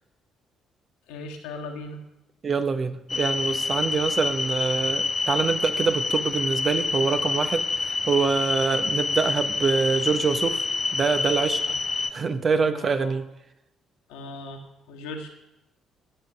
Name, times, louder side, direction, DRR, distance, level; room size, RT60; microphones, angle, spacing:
voice 1, 1.1-2.0 11.7-11.8 12.7-13.2 14.1-15.3, left 2 dB, 65° left, 3 dB, 1.7 m, -38 dB
voice 2, 2.4-10.6 10.9-11.6 12.1-13.3, right 5 dB, 40° right, 9 dB, 1.0 m, -25 dB
sound 1, 3.1-12.1, left 3 dB, 30° left, 0.8 m, -27 dB
11.5 x 8.9 x 6.2 m, 0.90 s
figure-of-eight pair, 45°, 0 cm